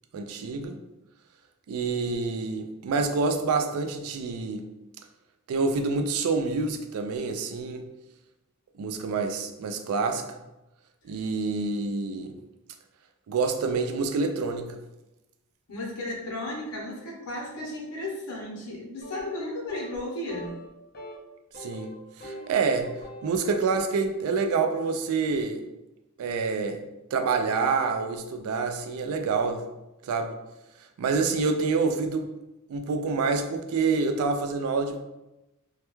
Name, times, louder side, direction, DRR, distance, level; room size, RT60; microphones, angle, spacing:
voice 1, 0.1-0.8 1.7-4.7 5.5-7.8 8.8-10.4 11.0-12.3 13.3-14.8 21.6-22.9 23.2-25.6 26.2-26.8 27.1-29.6 30.0-30.4 31.0-32.3 32.7-35.0, right 4 dB, 70° right, 7 dB, 0.3 m, -27 dB
voice 2, 15.7-20.5, left 1 dB, 85° left, -2 dB, 0.7 m, -34 dB
sound 1, 19.0-19.4 19.7-20.0 20.3-20.7 20.9-21.2 21.5-22.5 22.8-23.8, equal, 45° left, 0.4 m, -42 dB
2.2 x 2.2 x 2.9 m, 0.98 s
head